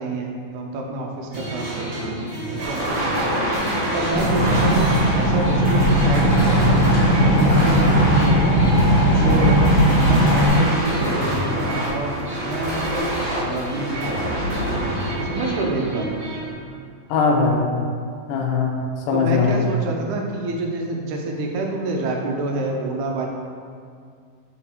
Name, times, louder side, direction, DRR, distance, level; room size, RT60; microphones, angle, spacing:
voice 1, 0.0-2.2 2.5-2.9 3.9-8.6 9.1-9.7 10.1-14.4 15.2-16.1 19.1-23.3, right 2 dB, 75° right, 0 dB, 2.1 m, -28 dB
sound 1, 1.3-16.5, right 1 dB, 90° right, 0.6 m, -32 dB
sound 2, 2.6-16.5, equal, 50° right, 1.4 m, -25 dB
sound 3, 4.1-10.5, equal, 50° left, 1.0 m, -18 dB
voice 2, 17.1-17.7 18.3-18.8 19.1-19.6, left 5 dB, 80° left, -1 dB, 2.4 m, -20 dB
6.9 x 4.0 x 4.5 m, 2.2 s
omnidirectional pair, 3.8 m